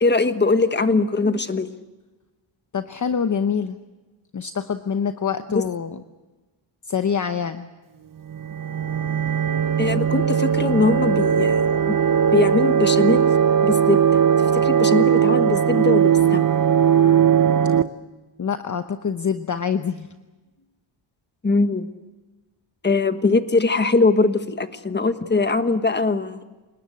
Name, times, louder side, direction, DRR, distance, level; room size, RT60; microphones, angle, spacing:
voice 1, 0.0-1.7 5.5-5.6 9.8-11.9 12.3-13.3 13.6-14.2 14.5-16.5 21.4-21.9 22.8-26.4, left 3 dB, 20° left, 9 dB, 1.4 m, -21 dB
voice 2, 2.7-3.8 4.3-6.0 6.8-7.7 18.4-20.1, left 7 dB, 35° left, 9 dB, 0.9 m, -25 dB
sound 1, 8.2-17.8, right 8 dB, 40° right, 1.0 m, -19 dB
29.0 x 19.5 x 8.6 m, 1.2 s
wide cardioid pair, 130°, 49 cm